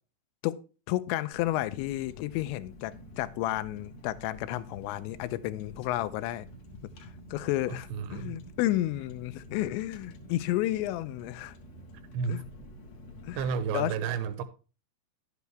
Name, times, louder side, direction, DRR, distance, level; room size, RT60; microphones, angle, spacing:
voice 1, 0.9-6.5 7.0-11.6 12.3-12.4 13.2-13.4 13.7-13.9, left 15 dB, 85° left, 2.9 m, -31 dB
Car, 1.3-13.9, equal, 55° left, 2.0 m, -49 dB
voice 2, 7.7-8.4 12.1-12.5 13.4-14.4, right 6 dB, 85° right, 3.1 m, -32 dB
11.5 x 8.2 x 3.4 m
omnidirectional pair, 5.1 m